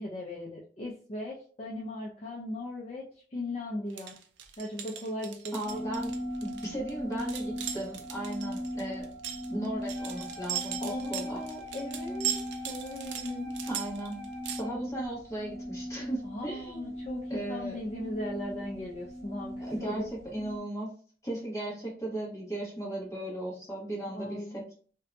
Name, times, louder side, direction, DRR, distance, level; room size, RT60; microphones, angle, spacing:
voice 1, 0.0-4.2 4.6-5.8 10.8-13.5 16.2-20.0 24.1-24.6, left 1 dB, 35° left, -3 dB, 0.4 m, -38 dB
sound 1, 3.9-14.6, right 10 dB, 85° right, 0.4 m, -38 dB
voice 2, 5.5-6.1 6.6-9.1 9.5-11.4 13.7-14.2 14.6-16.9 17.3-17.8 19.6-20.9 21.2-24.7, right 1 dB, 15° left, -5 dB, 1.1 m, -36 dB
sound 2, 5.6-20.6, equal, 15° right, 0.6 m, -39 dB
Wind instrument woodwind instrument, 9.9-14.8, left 2 dB, 55° left, 0.8 m, -46 dB
2.6 x 2.2 x 2.5 m, 0.43 s
head